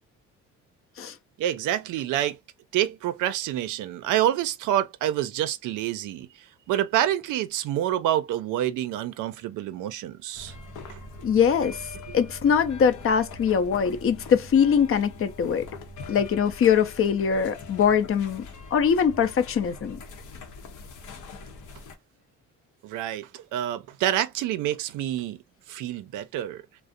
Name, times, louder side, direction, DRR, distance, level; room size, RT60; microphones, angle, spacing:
voice 1, 1.4-2.4 2.7-6.3 6.7-10.5 10.9-11.0 12.1-12.2 22.8-25.4 25.7-26.6, right 12 dB, 85° right, 0.5 m, -27 dB
sound 1, 10.3-22.0, left 3 dB, 80° left, 0.7 m, -42 dB
voice 2, 11.2-11.9 12.1-15.7 16.1-18.5 18.7-20.0, left 7 dB, 45° left, 0.6 m, -22 dB
2.4 x 2.0 x 2.5 m
cardioid pair, 90°, 30 cm